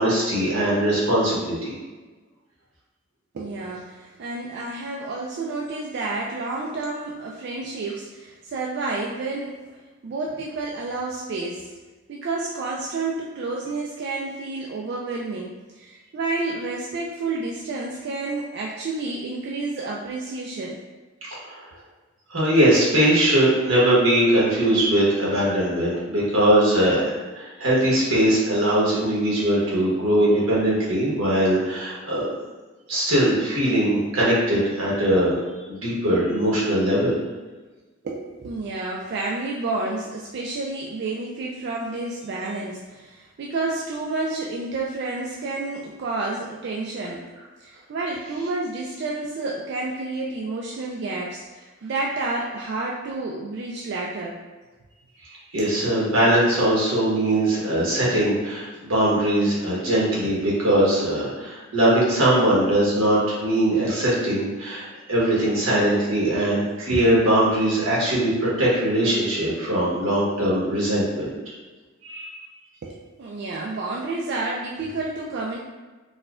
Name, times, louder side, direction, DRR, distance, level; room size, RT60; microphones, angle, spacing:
voice 1, 0.0-1.7 21.4-21.6 22.3-32.3 32.9-35.4 35.7-37.1 55.5-71.3 72.0-72.4, right 1 dB, 90° right, -7 dB, 1.2 m, -21 dB
voice 2, 3.3-9.7 10.0-11.7 12.1-20.8 38.0-47.3 47.6-54.4 55.6-55.8 72.8-75.6, right 3 dB, 55° right, -2 dB, 0.3 m, -30 dB
4.1 x 2.2 x 2.4 m, 1.2 s
head